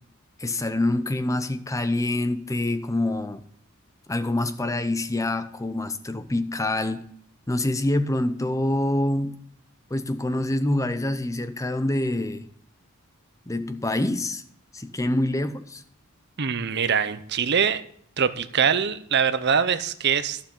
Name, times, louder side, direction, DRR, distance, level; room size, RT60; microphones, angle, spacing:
voice 1, 0.4-3.4 4.1-7.0 7.5-9.3 9.9-12.4 13.5-14.4 14.7-15.8, left 1 dB, 15° left, 11 dB, 0.7 m, -26 dB
voice 2, 16.4-17.8 18.2-20.4, right 6 dB, 50° right, 13 dB, 0.7 m, -23 dB
11.5 x 7.2 x 5.5 m, 0.65 s
head